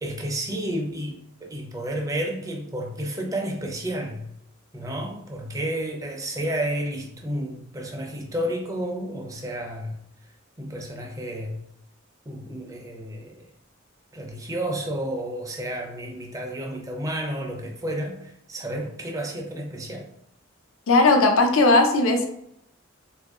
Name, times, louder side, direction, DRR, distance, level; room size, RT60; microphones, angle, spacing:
voice 1, 0.0-4.3 4.7-10.0 10.6-11.6 12.3-13.5 14.1-20.1, right 1 dB, 15° right, 1 dB, 0.5 m, -31 dB
voice 2, 20.9-22.2, left 2 dB, 80° left, 4 dB, 0.6 m, -17 dB
2.7 x 2.5 x 3.5 m, 0.76 s
head